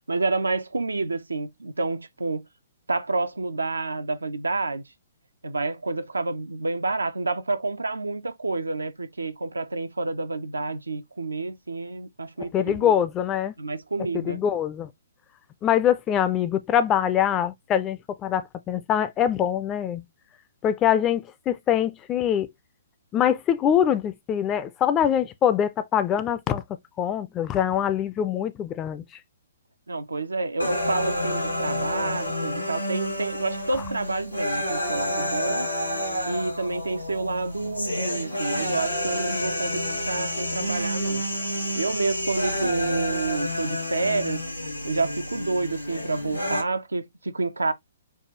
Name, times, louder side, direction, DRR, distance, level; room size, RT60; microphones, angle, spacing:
voice 1, 0.1-2.4 2.9-4.8 5.4-12.9 13.6-14.4 29.9-35.7 36.2-41.3 41.8-44.4 44.8-47.7, right 3 dB, 75° right, 0.4 m, -29 dB
voice 2, 12.4-13.5 14.1-14.9 15.6-20.0 20.6-22.5 23.1-26.6 27.0-29.0, left 9 dB, 20° left, 0.4 m, -24 dB
sound 1, 30.6-46.6, left 1 dB, 85° left, 2.2 m, -29 dB
4.7 x 2.3 x 2.8 m
figure-of-eight pair, 125°, 0 cm